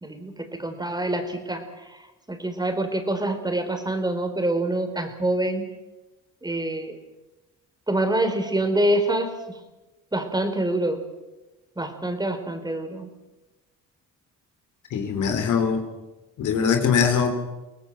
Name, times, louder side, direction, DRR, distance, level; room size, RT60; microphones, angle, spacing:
voice 1, 0.0-1.6 2.3-5.6 6.4-7.0 7.9-9.3 10.1-11.0 11.8-13.1, right 1 dB, 15° right, 7 dB, 4.0 m, -25 dB
voice 2, 14.9-15.8 16.4-17.3, left 6 dB, 80° left, 7 dB, 3.7 m, -22 dB
24.0 x 18.5 x 7.6 m, 1.1 s
cardioid pair, 90°, 30 cm